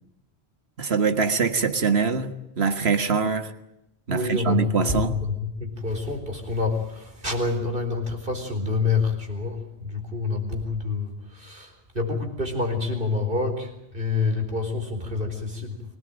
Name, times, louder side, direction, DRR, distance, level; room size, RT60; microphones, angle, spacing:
voice 1, 0.8-3.5 4.1-5.2, right 5 dB, 70° right, 9 dB, 1.9 m, -23 dB
voice 2, 4.1-15.8, left 4 dB, 55° right, 5 dB, 4.5 m, -27 dB
25.0 x 18.5 x 8.9 m, 0.86 s
omnidirectional pair, 1.1 m